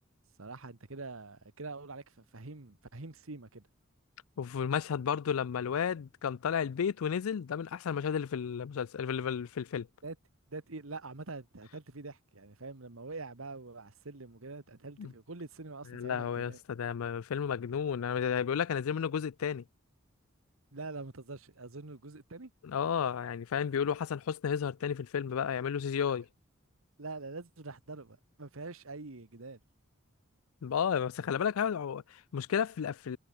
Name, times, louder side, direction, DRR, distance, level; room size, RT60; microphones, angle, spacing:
voice 1, 0.4-3.7 10.0-10.2 10.5-16.6 20.7-22.5 27.0-29.6, right 3 dB, 75° right, 1.5 m, -44 dB
voice 2, 4.4-9.9 15.0-15.1 15.9-19.6 22.6-26.3 30.6-33.2, left 7 dB, 90° left, 0.4 m, -32 dB
head